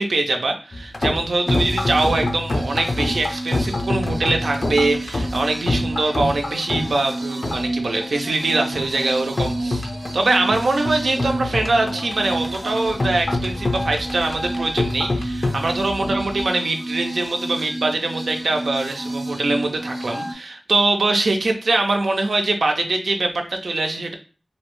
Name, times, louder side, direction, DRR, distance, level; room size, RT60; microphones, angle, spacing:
voice 1, 0.0-9.9 10.1-24.1, right 2 dB, 85° right, 3 dB, 0.4 m, -23 dB
sound 1, 0.7-16.4, left 2 dB, 50° left, 0.5 m, -27 dB
sound 2, 1.5-20.3, right 1 dB, 35° right, 0.6 m, -30 dB
2.6 x 2.1 x 2.9 m, 0.36 s
cardioid pair, 40°, 0 cm